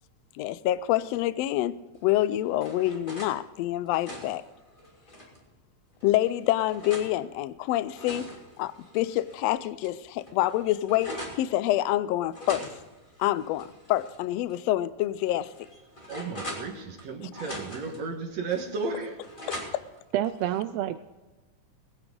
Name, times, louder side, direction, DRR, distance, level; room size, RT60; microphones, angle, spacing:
voice 1, 0.3-4.4 6.0-8.3 8.6-12.7 13.2-15.7 19.5-19.8, left 14 dB, 85° left, 16 dB, 1.5 m, -27 dB
sound 1, 2.1-3.4 3.8-5.4 6.0-7.1 7.7-9.4 9.8-9.9 10.2-11.4 12.3-14.2 14.5-14.6 15.2-17.0 17.3-18.0 18.5-20.0, left 1 dB, 15° left, 2.8 m, -42 dB
voice 2, 16.1-19.2, right 4 dB, 65° right, 1 dB, 2.6 m, -34 dB
voice 3, 20.1-21.0, right 12 dB, 85° right, 10 dB, 1.4 m, -28 dB
21.0 x 9.8 x 3.8 m, 1.2 s
omnidirectional pair, 3.4 m